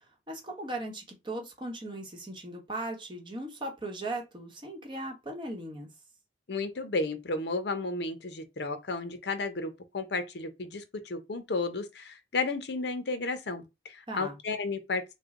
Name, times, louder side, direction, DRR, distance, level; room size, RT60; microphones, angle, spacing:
voice 1, 0.3-5.9 14.1-14.4, right 1 dB, 25° right, 1.0 m, -38 dB
voice 2, 6.5-15.0, left 3 dB, 65° left, 0.7 m, -33 dB
3.2 x 2.2 x 3.6 m
head